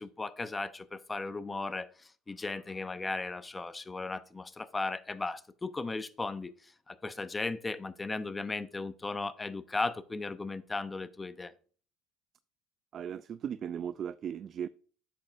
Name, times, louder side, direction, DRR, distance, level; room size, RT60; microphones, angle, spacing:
voice 1, 0.0-1.9 2.3-6.5 6.9-11.5, left 3 dB, 20° left, 0.7 m, -36 dB
voice 2, 12.9-14.7, right 8 dB, 45° right, 0.3 m, -37 dB
10.5 x 7.5 x 2.5 m
supercardioid pair, 90°, 0 cm